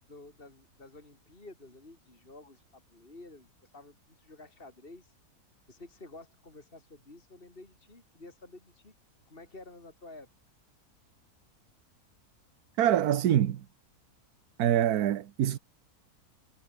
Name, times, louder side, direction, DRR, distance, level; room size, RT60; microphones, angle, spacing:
voice 1, 0.0-5.1 5.7-8.9 9.3-10.3, left 2 dB, 35° left, 3.8 m, -51 dB
voice 2, 12.8-13.6 14.6-15.6, right 11 dB, 75° right, 1.4 m, -25 dB
omnidirectional pair, 1.7 m